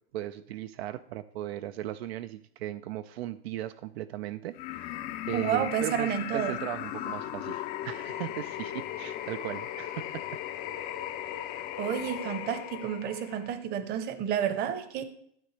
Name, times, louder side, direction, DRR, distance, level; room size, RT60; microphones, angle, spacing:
voice 1, 0.1-5.0 5.3-10.3, right 13 dB, 75° right, 12 dB, 0.5 m, -37 dB
sound 1, 4.5-13.6, left 12 dB, 30° left, 0.4 m, -37 dB
voice 2, 5.3-6.6 11.8-15.0, right 9 dB, 30° right, 11 dB, 0.9 m, -30 dB
12.5 x 7.6 x 3.3 m, 0.68 s
supercardioid pair, 145°, 32 cm